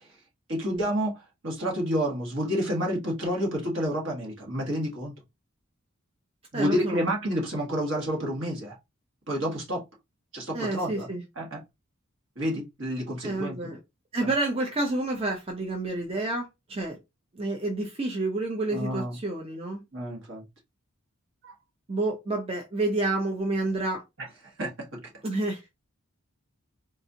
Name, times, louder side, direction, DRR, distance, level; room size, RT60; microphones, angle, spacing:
voice 1, 0.5-5.1 6.5-8.8 9.3-9.8 10.3-11.1 11.4-11.6 12.3-13.7 14.2-14.3 18.7-19.2 19.9-20.4 21.4-21.5 24.6-25.0, equal, 60° right, 1.5 m, -29 dB
voice 2, 6.5-7.0 10.5-11.2 13.2-13.8 14.1-17.0 17.3-19.8 21.9-24.0 25.2-25.6, right 2 dB, 30° right, 0.6 m, -29 dB
4.0 x 2.5 x 2.7 m
head